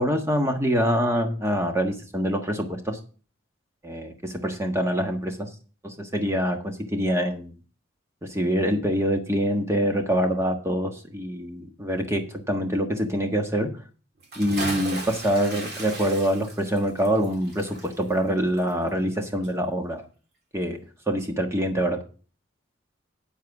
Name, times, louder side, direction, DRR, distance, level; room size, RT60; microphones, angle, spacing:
voice 1, 0.0-3.0 3.8-5.5 5.8-7.5 8.2-13.7 14.4-20.0 20.5-20.8 21.1-22.0, equal, 15° right, 4 dB, 1.4 m, -25 dB
Bathtub (filling or washing) / Splash splatter, 14.2-19.2 19.4-19.5, right 2 dB, 55° right, 2.9 m, -36 dB
9.0 x 7.6 x 4.8 m, 0.38 s
head